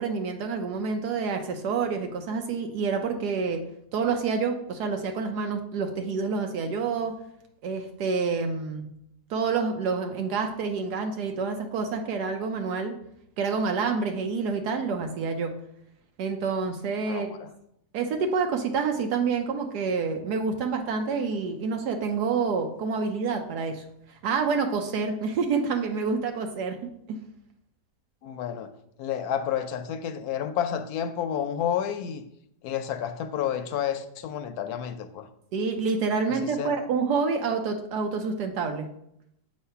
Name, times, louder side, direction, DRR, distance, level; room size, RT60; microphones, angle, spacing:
voice 1, 0.0-3.6 3.9-7.1 7.6-8.8 9.3-13.0 13.4-15.5 16.2-17.3 17.9-23.8 24.2-27.2 35.5-38.9, right 5 dB, 80° right, 4 dB, 1.2 m, -28 dB
voice 2, 17.1-17.5 28.2-28.7 29.0-32.2 32.6-35.3 36.4-36.7, left 9 dB, 75° left, 9 dB, 1.0 m, -30 dB
7.4 x 3.2 x 5.6 m, 0.75 s
omnidirectional pair, 1.8 m